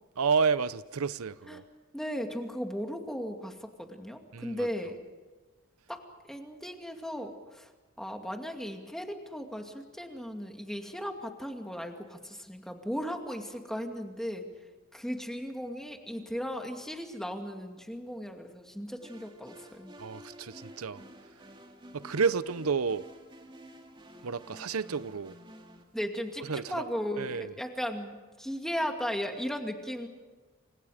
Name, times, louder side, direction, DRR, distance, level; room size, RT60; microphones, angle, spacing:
voice 1, 0.2-1.6 4.3-4.6 20.0-21.0 21.9-23.1 24.2-25.3 26.5-26.8 27.2-27.5, right 5 dB, 90° right, 0.7 m, -30 dB
voice 2, 1.9-5.0 5.9-7.7 8.0-14.5 14.9-19.9 25.9-30.1, equal, ahead, 2.4 m, -36 dB
sound 1, 19.0-25.8, equal, 25° right, 2.6 m, -51 dB
28.0 x 26.0 x 5.1 m
head